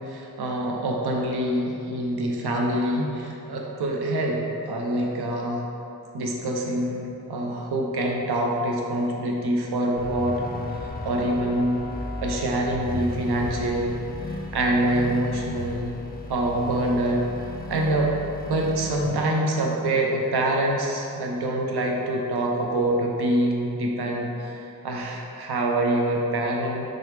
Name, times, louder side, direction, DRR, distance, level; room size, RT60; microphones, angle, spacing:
voice 1, 0.0-5.7 6.1-10.4 10.8-11.8 12.2-15.9 16.3-17.3 17.7-18.1 18.4-26.8, right 1 dB, 80° right, -1 dB, 0.6 m, -25 dB
sound 1, 10.0-19.1, left 1 dB, 25° left, 0.4 m, -35 dB
3.7 x 3.2 x 3.2 m, 2.8 s
cardioid pair, 50°, 38 cm